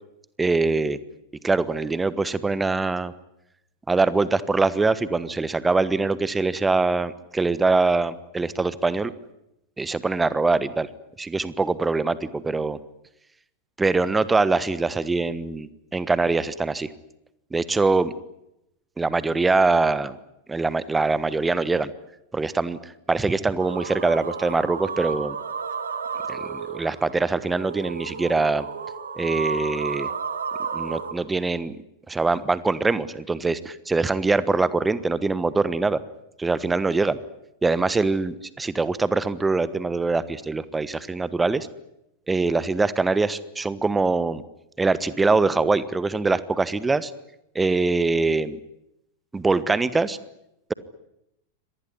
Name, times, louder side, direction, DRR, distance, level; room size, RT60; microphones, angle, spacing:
voice 1, 0.4-1.0 1.4-3.1 3.9-9.1 9.8-10.9 11.2-12.8 13.8-16.9 17.5-18.1 19.0-20.2 20.5-21.9 22.3-25.4 26.3-28.7 29.1-30.1 30.7-31.8 32.1-36.0 36.4-37.2 37.6-41.7 42.3-44.4 44.8-47.1 47.5-48.6 49.3-50.2, right 3 dB, 10° right, 17 dB, 1.3 m, -23 dB
sound 1, 23.6-31.1, right 5 dB, 70° right, 2.7 m, -32 dB
25.5 x 19.5 x 9.8 m, 0.86 s
figure-of-eight pair, 90°, 0 cm